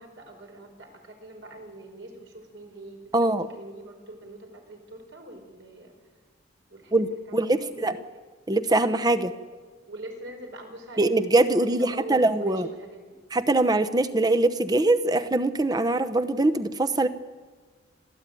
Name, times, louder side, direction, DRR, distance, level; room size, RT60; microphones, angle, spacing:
voice 1, 0.0-5.9 6.7-7.9 9.9-13.2, right 1 dB, 70° right, 3 dB, 5.1 m, -43 dB
voice 2, 3.1-3.5 6.9-8.0 8.5-9.3 11.0-12.7 13.3-17.1, right 2 dB, 20° right, 10 dB, 0.9 m, -23 dB
29.5 x 13.5 x 9.3 m, 1.4 s
head